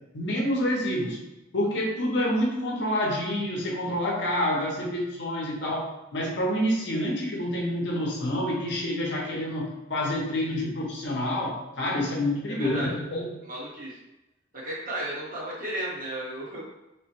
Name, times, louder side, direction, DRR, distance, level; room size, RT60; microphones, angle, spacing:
voice 1, 0.1-1.2 1.5-13.3, left 1 dB, 60° left, -2 dB, 0.7 m, -28 dB
voice 2, 12.5-12.9 13.4-14.0 14.5-16.6, right 1 dB, 45° right, -5 dB, 1.0 m, -34 dB
3.0 x 2.1 x 3.0 m, 0.93 s
head